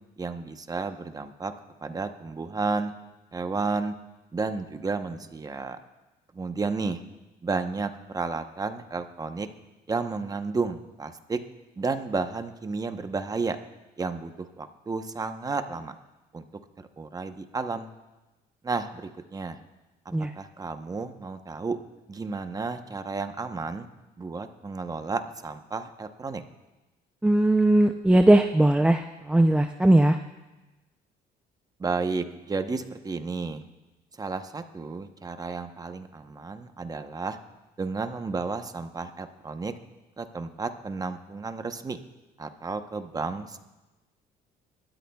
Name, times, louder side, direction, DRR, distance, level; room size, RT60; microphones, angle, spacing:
voice 1, 0.2-1.5 1.8-2.9 3.3-3.9 4.3-5.8 6.3-7.0 7.4-9.5 9.9-11.4 11.8-13.6 14.0-15.9 16.3-16.4 16.8-17.9 18.6-19.6 20.3-21.8 22.1-23.9 24.2-26.4 31.8-33.6 34.2-37.4 37.8-39.7 40.2-42.0 42.4-43.6, right 4 dB, 20° right, 8 dB, 0.9 m, -32 dB
voice 2, 27.2-30.2, right 1 dB, 5° right, 5 dB, 0.5 m, -19 dB
28.0 x 13.0 x 2.3 m, 1.1 s
cardioid pair, 110°, 17 cm